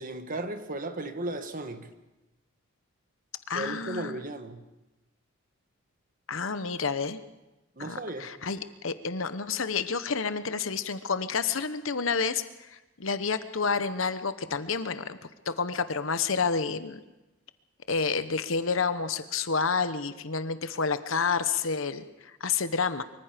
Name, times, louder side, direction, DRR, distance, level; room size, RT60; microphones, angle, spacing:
voice 1, 0.0-1.9 3.5-4.6 7.8-8.3, right 2 dB, 40° right, 8 dB, 1.5 m, -35 dB
voice 2, 3.5-4.2 6.3-7.2 7.8-15.2 15.5-17.0 17.9-23.0, left 5 dB, 70° left, 11 dB, 1.0 m, -29 dB
24.0 x 24.0 x 5.2 m, 1.0 s
head